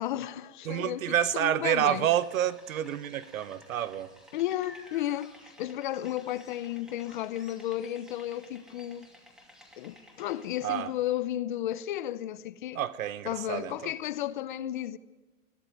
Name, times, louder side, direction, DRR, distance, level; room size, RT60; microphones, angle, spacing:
voice 1, 0.0-2.1 4.3-9.1 9.8-12.8 13.2-15.0, left 12 dB, 40° left, 0.6 m, -33 dB
voice 2, 0.7-4.1 10.6-10.9 12.7-13.9, right 11 dB, 75° right, 1.3 m, -29 dB
sound 1, 2.1-10.5, left 1 dB, ahead, 2.6 m, -54 dB
23.0 x 14.0 x 9.2 m
supercardioid pair, 170°, 41 cm